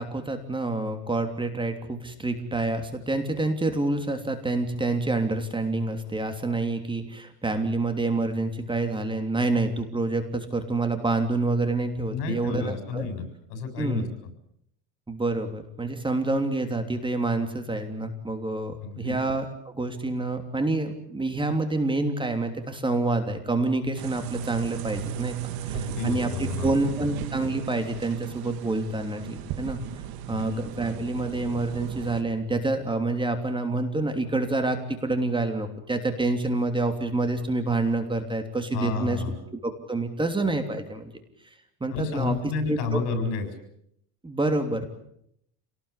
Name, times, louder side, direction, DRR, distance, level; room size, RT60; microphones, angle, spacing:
voice 1, 0.0-13.1 13.8-14.1 15.1-25.3 25.6-29.8 30.3-39.2 39.6-41.1 41.8-42.4 42.7-43.0 44.2-44.9, right 2 dB, 15° right, 6 dB, 3.1 m, -27 dB
voice 2, 12.1-14.0 18.8-19.1 25.7-27.1 30.3-30.6 38.7-39.3 41.9-43.5, left 4 dB, 80° left, 8 dB, 7.4 m, -31 dB
sound 1, 24.0-32.2, right 9 dB, 70° right, 2.7 m, -36 dB
27.5 x 19.0 x 8.4 m, 0.73 s
cardioid pair, 130°, 38 cm